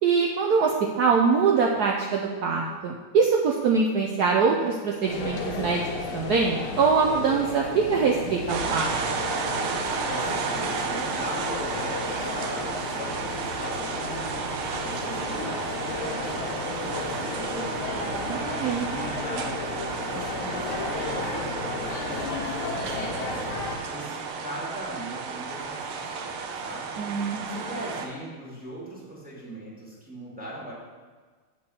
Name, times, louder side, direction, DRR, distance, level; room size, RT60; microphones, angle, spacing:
voice 1, 0.0-5.8 6.1-9.2 18.3-18.9 27.0-27.5, right 5 dB, 70° right, 0 dB, 0.9 m, -23 dB
sound 1, 5.1-23.8, left 3 dB, 85° left, 2.3 m, -33 dB
sound 2, 8.5-28.1, right 5 dB, 85° right, 1.7 m, -33 dB
voice 2, 10.1-18.2 18.5-19.7 20.0-23.4 23.9-24.2 24.4-26.8 27.5-30.7, right 1 dB, 5° right, -6 dB, 2.3 m, -40 dB
7.6 x 4.5 x 7.0 m, 1.5 s
omnidirectional pair, 2.3 m